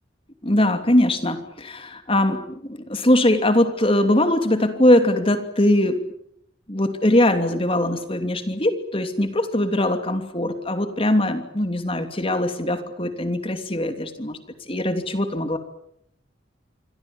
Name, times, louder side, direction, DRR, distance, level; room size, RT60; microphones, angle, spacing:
voice 1, 0.4-6.0 6.7-14.4 14.7-15.6, left 1 dB, 30° left, 8 dB, 2.9 m, -21 dB
28.0 x 25.0 x 7.3 m, 0.72 s
head